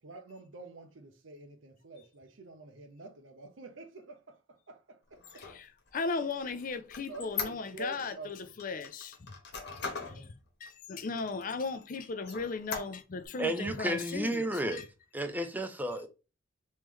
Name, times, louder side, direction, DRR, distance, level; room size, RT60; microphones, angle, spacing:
voice 1, 0.0-5.5 7.1-8.5 9.9-10.3 11.0-11.2, right 3 dB, 85° right, 0.7 m, -48 dB
Squeak, 5.1-8.1 8.6-10.2 10.7-10.8 11.2-11.8 12.2-13.3, left 5 dB, 60° left, 1.1 m, -40 dB
voice 2, 5.9-9.3 9.7-9.8 10.1-10.3 10.6-14.8, left 4 dB, 45° left, 0.5 m, -37 dB
voice 3, 13.4-14.8 15.1-16.1, right 1 dB, 10° right, 0.5 m, -32 dB
3.2 x 3.1 x 3.6 m
head